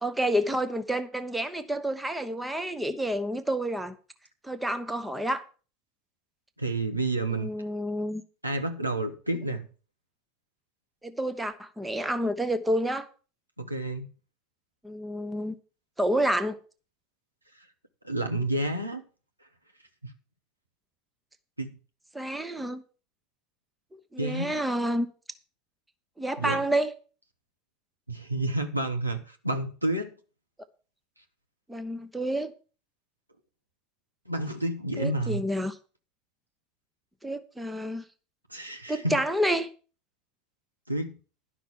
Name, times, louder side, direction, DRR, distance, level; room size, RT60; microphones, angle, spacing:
voice 1, 0.0-3.9 4.4-5.4 7.3-8.2 11.0-13.1 14.8-15.5 16.0-16.6 22.1-22.8 24.1-25.1 26.2-26.9 31.7-32.5 35.0-35.8 37.2-38.0 38.9-39.7, right 1 dB, 5° right, 1.0 m, -29 dB
voice 2, 6.6-7.5 8.4-9.7 13.6-14.1 18.0-19.0 20.0-20.1 21.6-21.8 24.2-24.6 26.4-26.6 28.1-30.2 34.3-35.4 38.5-39.2 40.9-41.2, right 2 dB, 85° right, 1.2 m, -30 dB
11.5 x 5.9 x 7.4 m
figure-of-eight pair, 75°, 0 cm